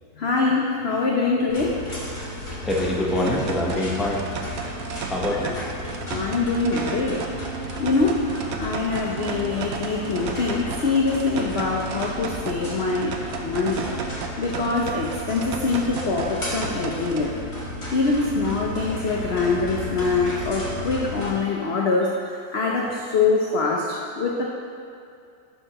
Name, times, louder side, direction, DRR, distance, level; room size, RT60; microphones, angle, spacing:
voice 1, 0.2-1.7 6.1-7.2 7.8-8.2 8.6-13.1 13.4-13.8 14.4-17.4 17.9-24.4, left 4 dB, 75° left, -2 dB, 0.5 m, -24 dB
sound 1, 1.5-21.3, left 1 dB, 15° left, 1.5 m, -34 dB
voice 2, 2.7-4.3 5.1-5.6 17.8-17.9, left 1 dB, ahead, -4 dB, 0.3 m, -24 dB
sound 2, 3.3-17.3, right 6 dB, 70° right, 0.8 m, -35 dB
sound 3, 7.1-7.8 8.0-9.6 9.9-14.3 14.6-14.7, right 4 dB, 45° right, 1.7 m, -39 dB
11.0 x 5.4 x 3.0 m, 2.4 s
omnidirectional pair, 1.9 m